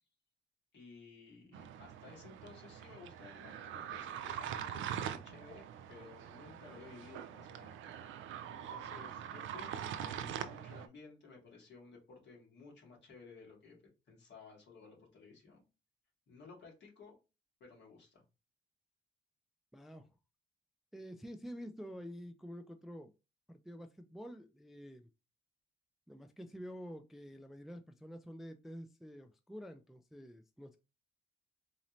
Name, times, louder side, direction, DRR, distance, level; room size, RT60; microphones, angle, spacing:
voice 1, 0.7-13.8 14.1-15.6 16.3-17.1 17.6-18.2, left 4 dB, 60° left, 2.2 m, -56 dB
sound 1, 1.5-10.9, right 9 dB, 80° right, 0.4 m, -43 dB
voice 2, 19.7-20.1 20.9-23.1 23.5-25.1 26.1-30.8, equal, ahead, 0.3 m, -48 dB
4.0 x 2.6 x 3.0 m
cardioid pair, 90°, 20 cm